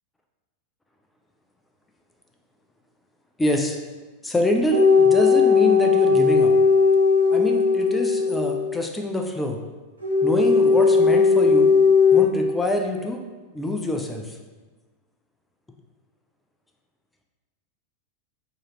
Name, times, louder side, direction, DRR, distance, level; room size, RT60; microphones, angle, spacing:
voice 1, 3.4-3.8 4.2-6.5 7.3-9.6 10.2-11.7 12.1-13.2 13.5-14.4, left 1 dB, 10° left, 2 dB, 0.4 m, -25 dB
sound 1, 4.7-8.7 10.0-12.2, left 5 dB, 75° right, 1.1 m, -17 dB
4.7 x 2.9 x 3.0 m, 1.3 s
figure-of-eight pair, 90°, 0 cm